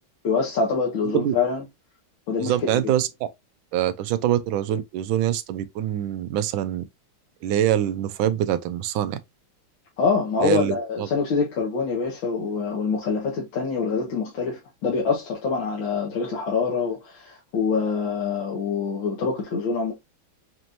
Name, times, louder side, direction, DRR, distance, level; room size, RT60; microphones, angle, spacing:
voice 1, 0.2-1.6 2.3-2.9 10.0-19.9, left 5 dB, 70° left, 2.0 m, -25 dB
voice 2, 1.0-1.4 2.4-3.3 3.7-6.8 7.4-9.2 10.4-11.1, right 11 dB, 80° right, 1.4 m, -24 dB
5.3 x 3.0 x 2.5 m
omnidirectional pair, 2.2 m